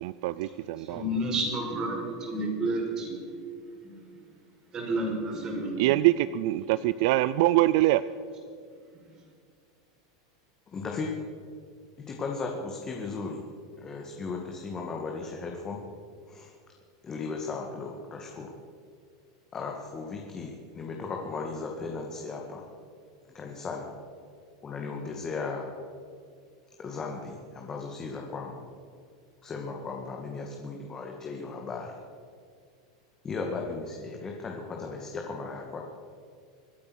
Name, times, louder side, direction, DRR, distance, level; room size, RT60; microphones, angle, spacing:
voice 1, 0.0-1.0 5.8-8.0, right 16 dB, 65° right, 16 dB, 0.4 m, -24 dB
voice 2, 0.8-3.3 3.8-4.2 4.7-5.9 9.1-9.2, right 1 dB, 30° right, 1 dB, 5.3 m, -31 dB
voice 3, 10.7-11.1 12.0-13.4 13.8-15.8 16.3-16.5 17.0-18.5 19.5-22.7 23.3-23.9 24.6-25.8 26.8-28.6 29.4-31.9 33.2-35.8, left 4 dB, 25° left, 0 dB, 2.0 m, -36 dB
25.5 x 8.7 x 6.3 m, 2.2 s
supercardioid pair, 115°, 2 cm